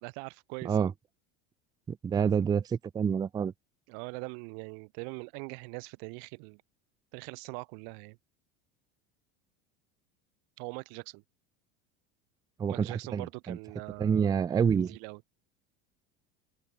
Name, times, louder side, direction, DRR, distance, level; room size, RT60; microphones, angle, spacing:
voice 1, 0.0-0.9 3.9-6.6 7.1-8.2 10.6-11.2 12.7-14.3 14.7-15.2, right 40 dB or more, 65° right, 1.5 m, -42 dB
voice 2, 1.9-3.5 12.6-13.6 14.0-15.0, right 7 dB, 15° right, 0.4 m, -28 dB
open air
supercardioid pair, 140°, 29 cm